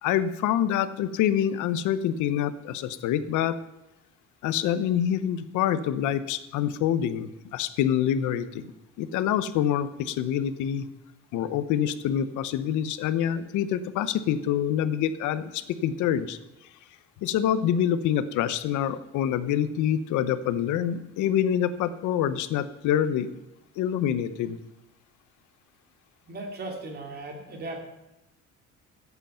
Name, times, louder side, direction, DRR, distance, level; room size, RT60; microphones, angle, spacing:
voice 1, 0.0-3.6 4.4-8.7 9.0-10.9 11.3-16.4 17.2-23.3 23.8-24.6, left 10 dB, 90° left, 13 dB, 0.9 m, -26 dB
voice 2, 26.3-27.8, right 2 dB, 35° right, 3 dB, 2.5 m, -37 dB
14.5 x 8.2 x 5.7 m, 0.94 s
cardioid pair, 165°, 29 cm